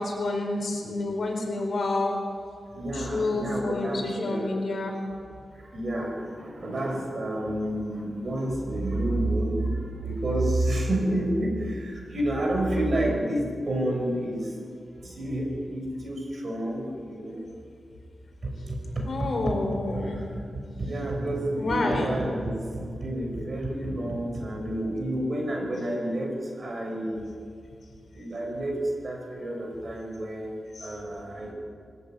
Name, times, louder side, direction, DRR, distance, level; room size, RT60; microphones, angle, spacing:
voice 1, 0.0-2.2 2.9-4.9 19.0-20.2 21.6-22.1 30.7-30.9, left 2 dB, 55° left, 1 dB, 4.8 m, -28 dB
voice 2, 2.7-4.5 5.5-14.5 15.0-17.4 18.4-19.5 19.9-20.4 20.7-27.3 28.1-31.5, right 1 dB, 50° right, 1 dB, 6.3 m, -29 dB
23.0 x 14.0 x 9.5 m, 2.2 s
wide cardioid pair, 100°, 0 cm